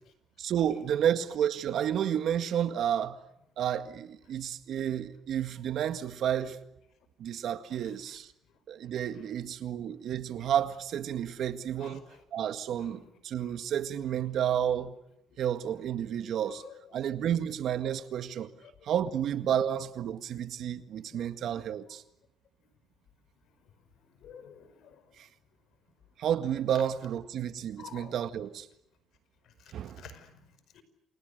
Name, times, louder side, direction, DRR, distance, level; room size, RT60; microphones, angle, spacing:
voice 1, 0.4-3.2 3.6-6.6 7.2-8.3 8.7-12.0 12.3-15.0 15.4-16.6 16.9-18.5 18.8-22.0 25.2-25.3 26.2-28.7 29.7-30.0, right 9 dB, 65° right, 1.9 m, -31 dB
voice 2, 7.7-8.2 11.8-12.2 12.8-13.1 13.4-13.5 16.4-16.8 18.6-18.7 21.0-21.2 24.2-25.0 27.8-28.2 30.0-30.3 30.7-30.8, left 9 dB, 70° left, 5.2 m, -51 dB
29.0 x 28.5 x 6.7 m
cardioid pair, 110°, 0 cm